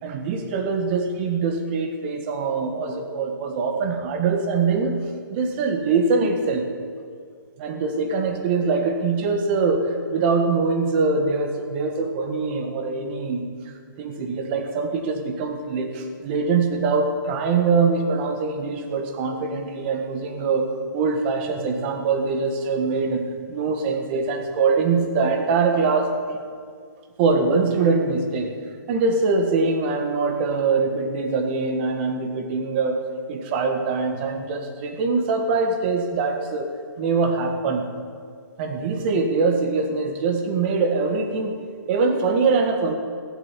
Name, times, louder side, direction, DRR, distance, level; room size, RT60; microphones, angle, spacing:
voice 1, 0.0-5.0 5.3-6.7 7.6-13.5 14.0-20.7 20.9-23.2 23.5-26.4 27.2-28.5 28.9-33.0 33.3-37.9 38.6-41.6 41.9-43.0, right 4 dB, 30° right, 5 dB, 1.6 m, -23 dB
15.0 x 8.1 x 9.8 m, 2.2 s
hypercardioid pair, 155°, 12 cm